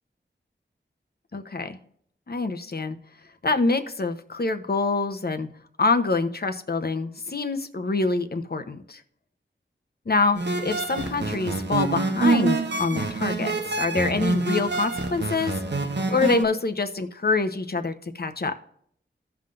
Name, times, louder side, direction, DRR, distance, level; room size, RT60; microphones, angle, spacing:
voice 1, 1.3-1.8 2.3-3.0 3.4-5.5 5.8-9.0 10.1-15.5 16.1-18.5, left 3 dB, 55° left, 7 dB, 0.9 m, -26 dB
sound 1, 10.3-16.4, right 3 dB, 65° right, 1.1 m, -26 dB
16.0 x 5.8 x 2.6 m, 0.65 s
wide cardioid pair, 70°, 20 cm